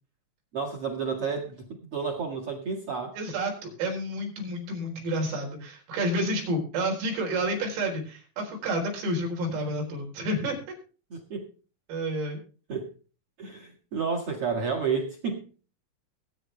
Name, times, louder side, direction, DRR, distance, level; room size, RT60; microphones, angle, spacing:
voice 1, 0.5-3.1 11.1-11.5 12.7-12.9 13.4-15.4, right 5 dB, 65° right, -1 dB, 1.3 m, -31 dB
voice 2, 3.2-10.6 11.9-12.4, right 1 dB, 90° right, 1 dB, 6.7 m, -30 dB
20.5 x 9.4 x 3.4 m, 0.37 s
omnidirectional pair, 5.8 m